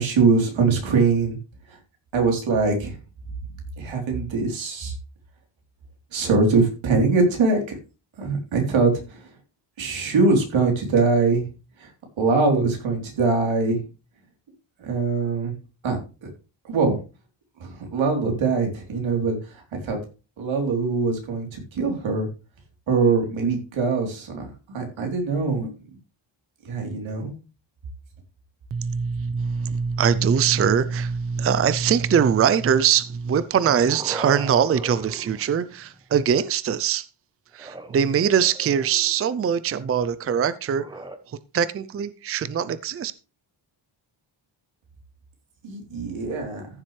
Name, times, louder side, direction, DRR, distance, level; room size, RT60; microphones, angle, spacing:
voice 1, 0.0-1.4 1.7-1.8 2.1-3.0 3.8-4.9 6.1-7.8 8.2-9.3 9.8-11.4 11.8-11.9 12.2-13.8 14.8-15.5 15.8-16.3 16.7-17.0 17.6-20.0 20.4-22.3 22.9-25.7 26.6-27.3 45.6-46.7, right 4 dB, 90° right, 3.7 m, -22 dB
voice 2, 28.7-37.1 37.5-40.8 41.3-43.1, right 7 dB, 30° right, 0.5 m, -22 dB
sound 1, 33.4-36.0 37.5-39.3 40.7-41.2, right 2 dB, 10° right, 0.9 m, -39 dB
14.5 x 7.4 x 3.3 m
wide cardioid pair, 160°, 45 cm